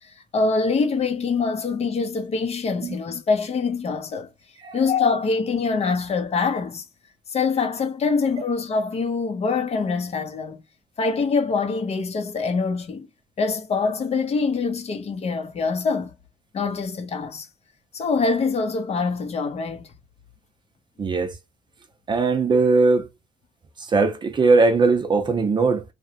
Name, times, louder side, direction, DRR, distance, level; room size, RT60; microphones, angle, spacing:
voice 1, 0.0-4.3 4.7-6.9 7.3-10.6 11.0-13.1 13.4-16.1 16.5-17.5 17.9-19.9, left 4 dB, 40° left, 0.7 m, -24 dB
voice 2, 21.0-21.4 22.1-23.1 23.8-25.8, right 3 dB, 25° right, 0.5 m, -19 dB
2.8 x 2.2 x 2.7 m
cardioid pair, 110°, 17 cm